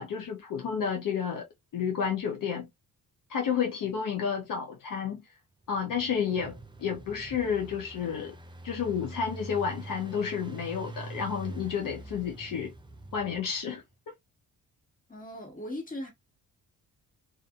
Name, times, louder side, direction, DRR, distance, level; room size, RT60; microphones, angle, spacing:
voice 1, 0.0-1.5 1.7-2.7 3.3-5.2 5.7-8.3 8.6-12.7 13.1-13.8, left 7 dB, 60° left, 0.7 m, -31 dB
Engine, 5.6-13.7, right 2 dB, 15° right, 0.4 m, -44 dB
voice 2, 15.1-16.1, left 1 dB, 20° left, 1.5 m, -38 dB
2.6 x 2.5 x 2.3 m
cardioid pair, 80°, 37 cm